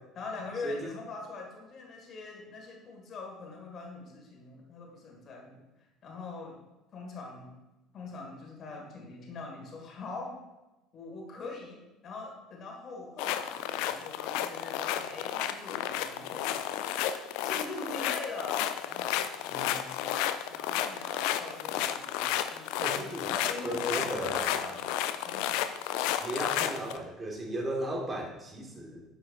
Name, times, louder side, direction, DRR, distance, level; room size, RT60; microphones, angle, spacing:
voice 1, 0.0-5.6 6.0-6.6 6.9-7.5 7.9-10.4 10.9-16.6 17.4-24.8 25.3-25.6, left 3 dB, 40° left, 1 dB, 2.0 m, -43 dB
sound 1, 13.2-27.0, left 11 dB, 60° left, 0.4 m, -32 dB
voice 2, 19.5-19.8 22.8-23.4 23.6-24.6 26.2-29.0, right 1 dB, 25° right, 2 dB, 1.6 m, -36 dB
9.7 x 7.0 x 2.6 m, 1.0 s
figure-of-eight pair, 60°, 0 cm